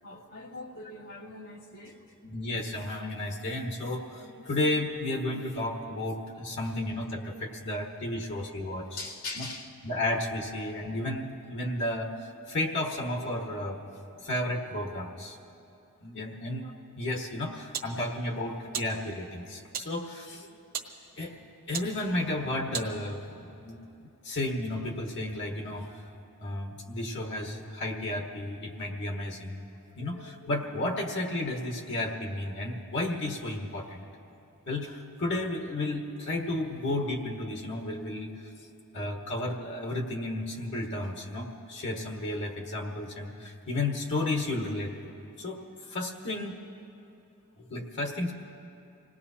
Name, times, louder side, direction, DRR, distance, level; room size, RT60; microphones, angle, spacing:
voice 1, 0.0-2.0 9.0-9.7, left 2 dB, 85° left, -6 dB, 2.8 m, -41 dB
voice 2, 2.2-8.9 9.4-9.5 9.8-13.8 14.1-15.4 16.0-20.5 21.2-23.8 24.2-25.9 26.4-29.6 29.9-34.0 34.7-38.3 38.9-44.9 45.4-45.6 45.9-46.5 47.7-48.3, left 1 dB, 55° left, 1 dB, 1.4 m, -33 dB
sound 1, 17.1-23.4, right 7 dB, 40° right, 1.1 m, -42 dB
26.5 x 19.0 x 2.8 m, 2.7 s
head